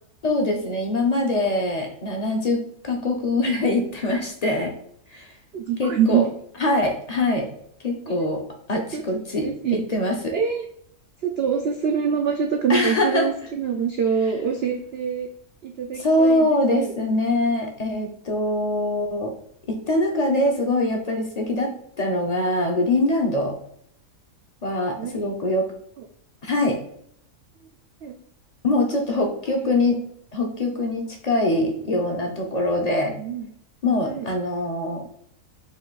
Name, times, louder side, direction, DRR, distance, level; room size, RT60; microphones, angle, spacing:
voice 1, 0.2-2.6 2.8-4.7 5.1-5.3 5.8-6.2 6.6-7.5 7.8-8.4 8.7-10.3 12.7-13.3 15.9-19.3 19.7-23.5 24.6-25.7 26.4-26.8 28.6-30.0 30.3-33.1 33.8-35.1, left 2 dB, 40° left, 1 dB, 0.6 m, -23 dB
voice 2, 5.5-6.3 8.1-8.3 8.9-9.0 9.4-9.8 10.3-10.6 11.2-15.3 15.6-16.9 25.0-25.2 26.0-26.1 28.0-28.2 29.6-29.7 33.1-33.5 34.0-34.3, right 7 dB, 75° right, 3 dB, 0.5 m, -25 dB
5.2 x 2.5 x 3.9 m, 0.67 s
omnidirectional pair, 1.6 m